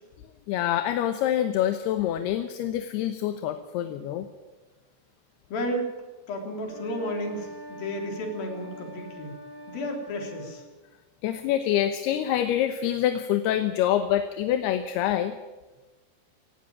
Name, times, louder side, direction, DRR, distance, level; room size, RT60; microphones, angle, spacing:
voice 1, 0.5-4.3 11.2-15.3, left 11 dB, 75° left, 9 dB, 2.9 m, -26 dB
voice 2, 5.5-9.3 9.7-10.6, equal, 55° left, 3 dB, 5.2 m, -33 dB
sound 1, 6.6-10.6, left 1 dB, 40° right, 8.8 m, -43 dB
18.0 x 18.0 x 8.7 m, 1.2 s
omnidirectional pair, 5.0 m